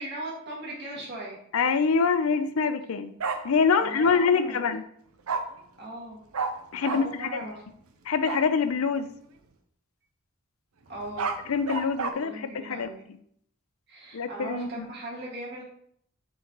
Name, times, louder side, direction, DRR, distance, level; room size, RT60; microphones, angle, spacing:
voice 1, 0.0-1.4 3.7-4.7 5.8-6.2 6.9-7.6 10.9-11.3 12.1-13.0 13.9-15.6, right 1 dB, 50° right, -5 dB, 1.9 m, -38 dB
voice 2, 1.5-3.1 3.4-4.8 6.7-7.4 8.1-9.1 11.5-12.9 14.1-14.9, left 5 dB, 80° left, 11 dB, 0.5 m, -25 dB
Bark, 3.2-3.4 5.3-5.4 6.3-6.5 6.8-7.0 8.2-8.4 10.9-12.1, right 5 dB, 85° right, 0.6 m, -29 dB
9.4 x 3.8 x 3.0 m, 0.67 s
head